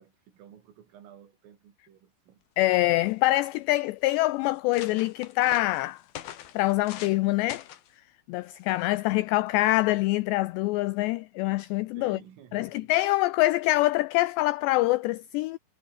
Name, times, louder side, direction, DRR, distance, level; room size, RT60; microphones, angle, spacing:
voice 1, 0.0-2.4 12.0-12.9, right 9 dB, 90° right, 5.8 m, -52 dB
voice 2, 2.6-6.0 6.5-7.7 8.3-12.2 12.5-15.6, left 18 dB, 85° left, 2.4 m, -25 dB
sound 1, 2.6-2.7 3.0-3.5 4.1-4.2 4.5-7.2 7.5-7.9 8.7-8.9, left 11 dB, 60° left, 3.2 m, -44 dB
omnidirectional pair, 5.7 m